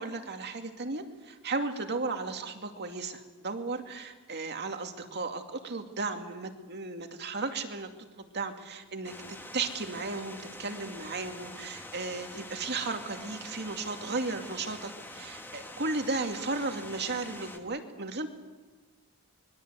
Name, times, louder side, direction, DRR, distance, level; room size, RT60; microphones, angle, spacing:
voice 1, 0.0-7.9 8.2-9.1 9.5-18.3, right 3 dB, 50° right, 5 dB, 2.5 m, -35 dB
sound 1, 9.0-17.6, left 1 dB, 10° left, 2.2 m, -45 dB
25.5 x 22.0 x 8.2 m, 1.3 s
head